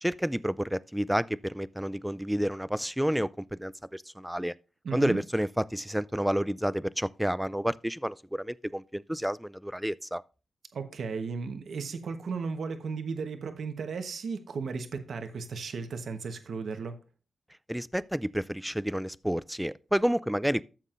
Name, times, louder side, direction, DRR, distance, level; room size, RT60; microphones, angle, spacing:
voice 1, 0.0-4.5 4.9-10.2 17.7-20.6, equal, 5° right, 0.3 m, -30 dB
voice 2, 4.8-5.2 10.7-17.0, right 5 dB, 75° right, 1.1 m, -35 dB
13.5 x 7.4 x 2.5 m
wide cardioid pair, 100°, 0 cm